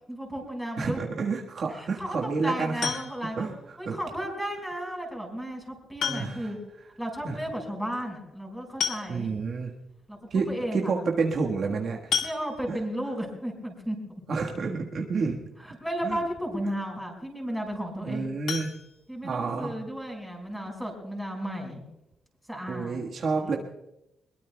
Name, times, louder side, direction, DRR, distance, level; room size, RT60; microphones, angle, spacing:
voice 1, 0.1-1.0 1.7-3.5 3.8-6.6 7.0-9.3 10.1-10.9 12.2-14.0 15.6-18.3 19.1-21.8 22.5-23.0 23.4-23.6, equal, ahead, 1 dB, 5.3 m, -34 dB
voice 2, 0.8-2.9 3.4-4.0 6.0-6.5 7.2-7.4 9.1-9.7 10.3-12.0 12.7-12.8 14.3-15.4 16.0-16.2 18.0-18.7 19.2-19.8 22.7-23.6, right 4 dB, 50° right, -1 dB, 1.5 m, -29 dB
sound 1, 2.8-3.4 4.9-5.0 6.0-6.6 6.9-7.0 7.3-7.4 8.4-8.5 8.8-9.5 10.1-10.2 10.5-10.7 12.1-12.9 18.4-19.6 20.0-20.1 20.5-20.6 21.0-21.1, left 7 dB, 75° left, 1.8 m, -32 dB
23.5 x 22.0 x 2.3 m, 0.88 s
cardioid pair, 145°, 0 cm